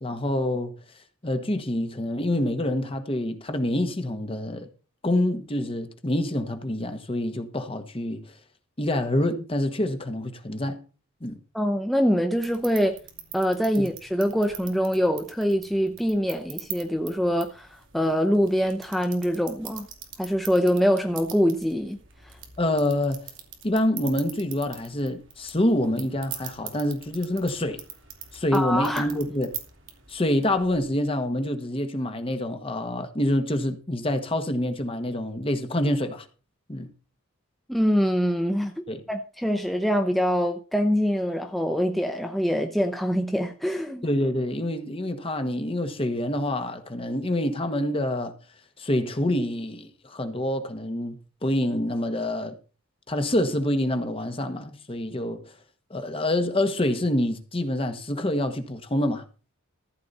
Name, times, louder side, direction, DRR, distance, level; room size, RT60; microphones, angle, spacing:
voice 1, 0.0-0.8 1.2-4.7 5.0-8.3 8.8-10.8 11.2-11.4 13.8-13.9 22.6-23.3 23.6-27.8 28.3-29.5 30.1-36.3 36.7-36.9 38.9-39.0 44.0-48.3 48.8-52.6 53.1-55.6 55.9-59.2, left 1 dB, 25° left, 1.3 m, -26 dB
voice 2, 11.5-12.9 13.3-19.9 20.2-22.0 28.5-29.1 37.7-38.7 39.1-44.0, equal, ahead, 0.7 m, -24 dB
sound 1, 12.4-30.8, right 9 dB, 60° right, 2.5 m, -43 dB
14.5 x 8.3 x 4.2 m
head